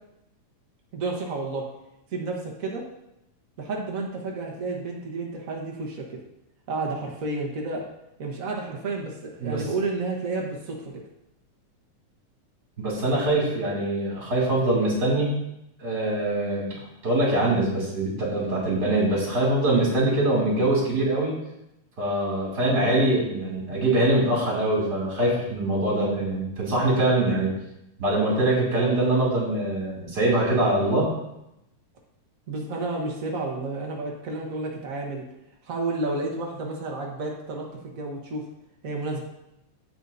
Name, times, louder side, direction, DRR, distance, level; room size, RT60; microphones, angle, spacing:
voice 1, 0.9-1.6 2.1-2.8 3.6-6.2 6.7-7.8 8.2-10.9 32.5-35.2 35.6-38.4 38.8-39.2, right 3 dB, 70° right, -1 dB, 0.7 m, -31 dB
voice 2, 12.8-15.3 15.8-16.8 17.0-21.3 22.0-27.5 28.0-31.1, right 1 dB, 35° right, -4 dB, 3.1 m, -23 dB
16.0 x 5.6 x 2.7 m, 0.85 s
omnidirectional pair, 3.5 m